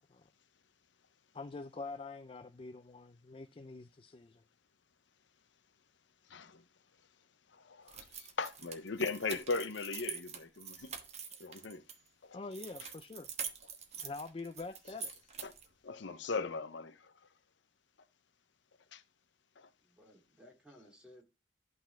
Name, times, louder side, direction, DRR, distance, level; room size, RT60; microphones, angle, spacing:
voice 1, 1.3-4.4 12.3-13.3 14.0-15.1, left 3 dB, 30° left, 0.4 m, -45 dB
voice 2, 6.3-6.6 7.5-10.9 11.4-11.8 12.2-12.4 15.4-15.5 15.8-17.1 18.9-19.0 19.6-19.7, left 4 dB, 85° left, 0.8 m, -38 dB
sound 1, 7.9-12.0 12.5-15.7, right 7 dB, 35° right, 1.2 m, -45 dB
voice 3, 19.8-21.2, equal, 5° right, 2.3 m, -59 dB
11.5 x 4.1 x 5.7 m
head